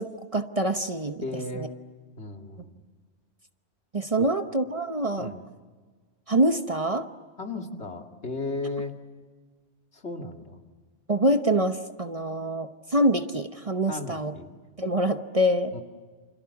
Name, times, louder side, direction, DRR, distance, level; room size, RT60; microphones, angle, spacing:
voice 1, 0.0-1.2 1.5-1.7 3.9-5.3 6.3-7.1 11.1-14.3 14.8-15.7, right 1 dB, 35° right, 8 dB, 1.0 m, -25 dB
voice 2, 1.2-1.8 2.2-2.8 4.2-4.3 5.2-5.5 7.4-9.0 9.9-10.6 13.9-14.5 15.7-15.8, left 2 dB, 70° left, 3 dB, 2.7 m, -35 dB
28.5 x 27.5 x 7.2 m, 1.5 s
omnidirectional pair, 1.2 m